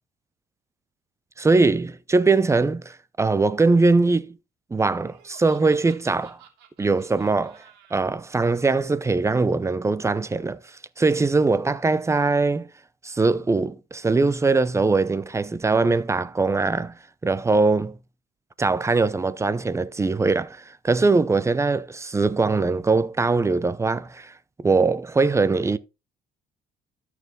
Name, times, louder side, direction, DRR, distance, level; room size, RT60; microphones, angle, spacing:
voice 1, 1.4-4.3 4.7-6.4 6.8-7.6 7.9-10.6 11.0-12.7 13.0-16.9 17.2-18.0 18.6-24.3 24.6-25.8, right 3 dB, 15° right, 0.7 m, -21 dB
Laughter, 5.0-8.1, right 9 dB, 85° right, 3.1 m, -52 dB
13.0 x 5.9 x 3.7 m
cardioid pair, 110°, 17 cm